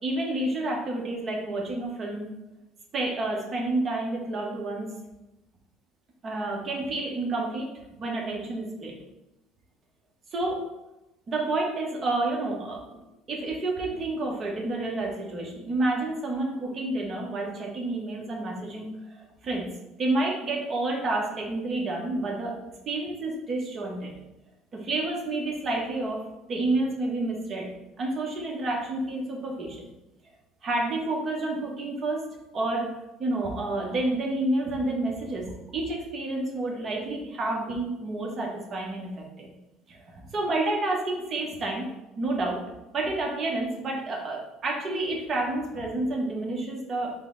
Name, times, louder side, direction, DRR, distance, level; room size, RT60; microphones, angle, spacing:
voice 1, 0.0-2.3 2.9-4.9 6.2-7.7 8.0-8.9 10.3-10.6 11.3-12.8 13.3-19.7 20.0-22.5 22.9-24.1 24.7-26.2 26.5-27.7 28.0-29.8 30.6-32.2 32.5-32.9 33.2-35.5 35.7-39.5 39.9-41.9 42.2-42.6 42.9-47.1, right 2 dB, 35° right, -1 dB, 0.9 m, -29 dB
5.2 x 2.1 x 3.8 m, 0.98 s
cardioid pair, 145°, 0 cm